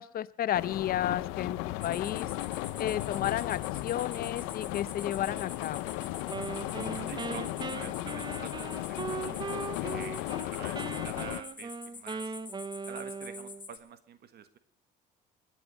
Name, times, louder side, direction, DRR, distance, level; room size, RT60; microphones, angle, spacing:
voice 1, 0.0-2.3 2.8-5.9, left 11 dB, 50° left, 17 dB, 0.7 m, -32 dB
sound 1, 0.5-11.4, left 17 dB, 85° left, 0.7 m, -36 dB
sound 2, 1.8-13.8, left 4 dB, 25° left, 1.8 m, -47 dB
Wind instrument woodwind instrument, 6.3-10.5 10.7-13.7, right 4 dB, 20° right, 0.9 m, -39 dB
voice 2, 6.5-12.3 12.9-14.6, right 8 dB, 55° right, 11 dB, 1.5 m, -48 dB
20.0 x 9.3 x 5.3 m, 0.67 s
supercardioid pair, 90°, 20 cm